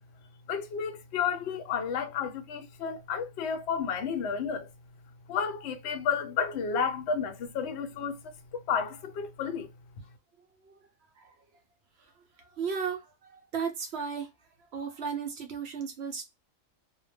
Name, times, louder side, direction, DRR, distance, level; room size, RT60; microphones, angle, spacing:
voice 1, 0.5-4.7 5.3-8.2 8.5-9.7, left 6 dB, 65° left, 0.8 m, -31 dB
voice 2, 12.0-14.3 14.7-16.2, right 6 dB, 65° right, 0.7 m, -35 dB
2.1 x 2.1 x 3.2 m
omnidirectional pair, 1.4 m